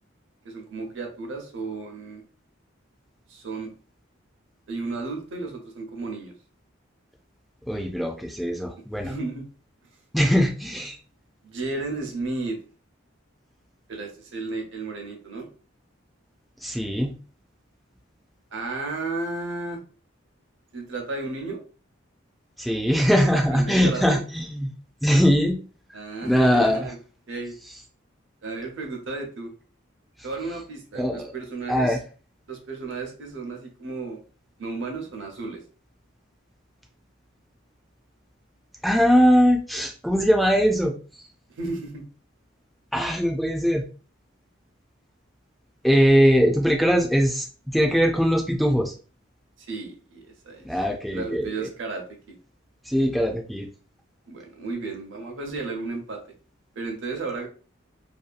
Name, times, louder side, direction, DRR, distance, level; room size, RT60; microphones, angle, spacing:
voice 1, 0.4-2.2 3.3-3.7 4.7-6.3 9.0-9.4 11.4-12.6 13.9-15.5 18.5-19.8 20.7-21.6 23.5-24.2 25.9-27.0 27.3-27.5 28.4-29.5 30.2-32.0 32.5-34.2 34.6-35.6 41.5-42.0 49.7-50.8 51.1-52.0 54.3-56.2 56.7-57.5, right 3 dB, 70° right, 2 dB, 0.7 m, -33 dB
voice 2, 7.7-9.1 10.1-11.0 16.6-17.1 22.6-24.7 25.0-25.6 26.2-26.9 31.0-31.3 31.7-32.0 38.8-41.3 42.9-43.9 45.8-48.9 50.6-51.7 52.9-53.7, equal, ahead, 1 dB, 0.3 m, -21 dB
2.7 x 2.2 x 2.5 m, 0.37 s
head